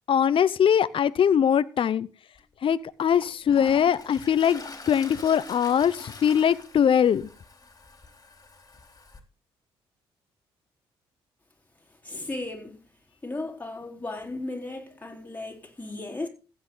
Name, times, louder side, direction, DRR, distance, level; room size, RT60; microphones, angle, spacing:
voice 1, 0.1-2.1 2.6-4.6 4.9-7.3, left 8 dB, 50° left, 0.7 m, -22 dB
Toilet flush, 2.4-2.5 3.0-9.2, left 3 dB, 30° left, 3.7 m, -44 dB
voice 2, 12.0-12.8 13.2-16.3, left 2 dB, 15° left, 4.2 m, -35 dB
15.5 x 8.8 x 4.0 m
hypercardioid pair, 55°, 12 cm